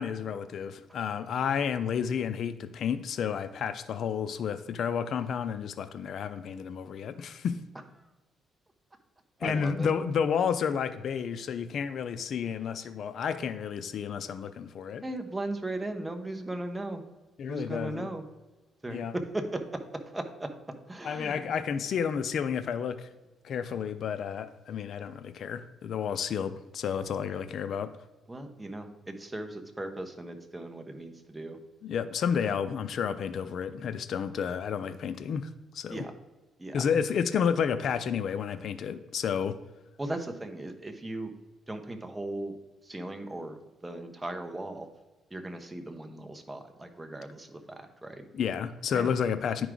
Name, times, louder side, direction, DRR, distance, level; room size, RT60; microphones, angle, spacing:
voice 1, 0.0-7.6 9.4-15.0 17.4-18.1 18.9-19.1 21.0-23.1 23.4-27.9 31.8-36.1 36.7-39.6 48.3-49.7, left 7 dB, 65° left, 0.4 m, -31 dB
voice 2, 9.4-9.9 15.0-17.0 17.5-18.2 18.8-20.5 20.9-21.4 28.3-31.6 32.4-32.6 35.9-36.1 36.6-36.8 40.0-41.3 41.7-42.6 42.8-44.9 45.3-48.2 48.9-49.2, right 1 dB, 15° right, 1.0 m, -37 dB
10.0 x 4.7 x 3.8 m
cardioid pair, 90°, 0 cm